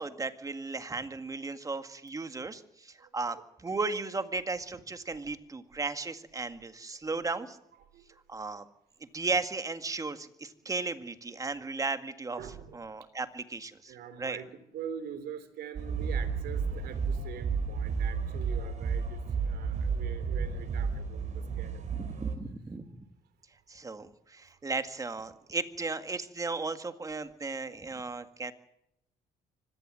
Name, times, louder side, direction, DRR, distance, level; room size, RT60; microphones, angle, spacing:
voice 1, 0.0-7.6 8.3-8.6 9.1-12.4 12.7-14.4 22.0-23.0 23.7-28.5, right 3 dB, 20° right, 9 dB, 1.9 m, -35 dB
voice 2, 3.0-3.4 5.3-5.4 6.9-7.1 7.9-8.1 12.4-13.0 13.9-22.0 24.0-24.1 24.5-24.6, right 8 dB, 70° right, 12 dB, 3.4 m, -44 dB
sound 1, 15.8-22.4, right 5 dB, 45° right, 4.1 m, -32 dB
24.5 x 18.0 x 7.6 m, 0.80 s
cardioid pair, 110°, 17 cm